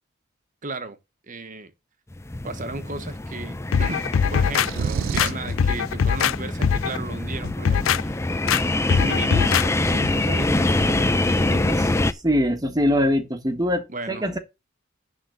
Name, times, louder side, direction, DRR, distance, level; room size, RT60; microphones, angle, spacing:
voice 1, 0.6-1.0 1.3-1.7 2.4-8.0 8.9-11.9 13.9-14.2, right 2 dB, 40° right, 1.2 m, -35 dB
sound 1, 2.1-12.1, left 2 dB, 15° left, 0.6 m, -25 dB
sound 2, 3.7-4.7 5.2-6.4 6.6-7.0 7.4-8.0 8.5-8.6 8.9-9.7 10.0-10.1, left 7 dB, 85° left, 0.4 m, -22 dB
sound 3, 4.6-5.5, right 6 dB, 80° right, 0.4 m, -27 dB
voice 2, 12.2-14.4, equal, 20° right, 1.3 m, -22 dB
10.0 x 3.8 x 6.7 m
head